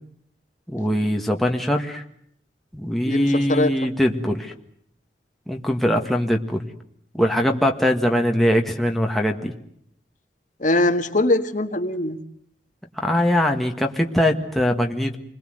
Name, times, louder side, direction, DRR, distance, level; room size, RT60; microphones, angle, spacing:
voice 1, 0.7-2.0 2.7-4.5 5.5-6.7 7.1-9.5 13.0-15.2, equal, ahead, 1 dB, 1.8 m, -21 dB
voice 2, 3.0-3.7 10.6-12.2, left 2 dB, 45° left, 6 dB, 1.7 m, -21 dB
28.5 x 21.5 x 8.0 m, 0.68 s
head